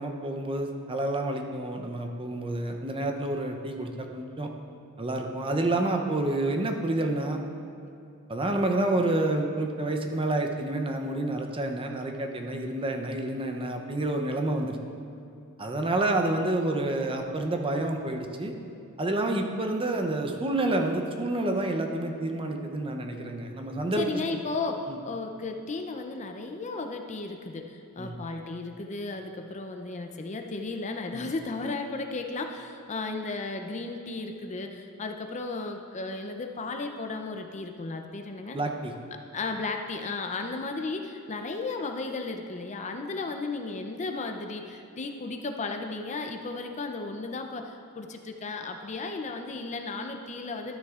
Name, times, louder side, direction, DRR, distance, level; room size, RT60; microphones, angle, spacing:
voice 1, 0.0-4.5 5.0-7.4 8.3-14.8 15.6-18.5 19.0-24.1 24.9-25.0 28.0-28.2 31.1-31.3 38.5-38.9, right 2 dB, 25° right, 4 dB, 0.6 m, -29 dB
voice 2, 24.0-38.6 39.3-50.8, left 3 dB, 30° left, 4 dB, 0.5 m, -34 dB
12.5 x 9.5 x 2.4 m, 2.6 s
head